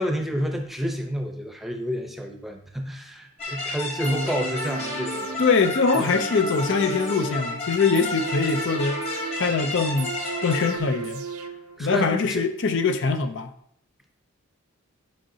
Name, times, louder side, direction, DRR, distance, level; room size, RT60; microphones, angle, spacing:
voice 1, 0.0-5.4 5.9-6.1 11.8-12.4, equal, ahead, 3 dB, 0.7 m, -29 dB
sound 1, 3.4-10.8, left 2 dB, 30° left, 1.4 m, -32 dB
sound 2, 4.0-12.0 12.4-12.5, right 5 dB, 70° right, 0.7 m, -36 dB
voice 2, 5.4-9.0 9.4-10.2 10.4-11.2 11.8-13.5, left 4 dB, 55° left, 8 dB, 0.5 m, -23 dB
10.5 x 5.5 x 2.7 m, 0.70 s
head